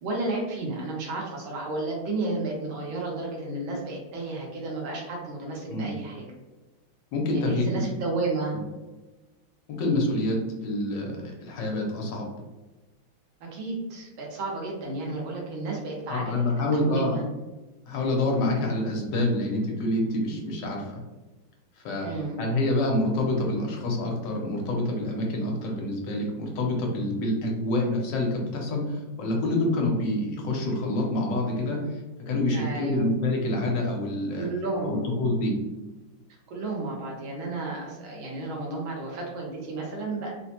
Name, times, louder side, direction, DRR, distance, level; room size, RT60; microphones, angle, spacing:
voice 1, 0.0-6.2 7.3-8.6 13.5-17.2 22.0-22.4 32.5-33.1 34.3-35.1 36.5-40.3, right 2 dB, 85° right, -2 dB, 1.8 m, -32 dB
voice 2, 7.1-7.9 9.7-12.3 16.1-17.2 17.8-21.0 21.8-22.1 22.4-32.0 32.3-34.5 34.8-35.5, left 1 dB, 70° left, 0 dB, 1.3 m, -27 dB
3.8 x 2.1 x 2.8 m, 1.1 s
omnidirectional pair, 2.2 m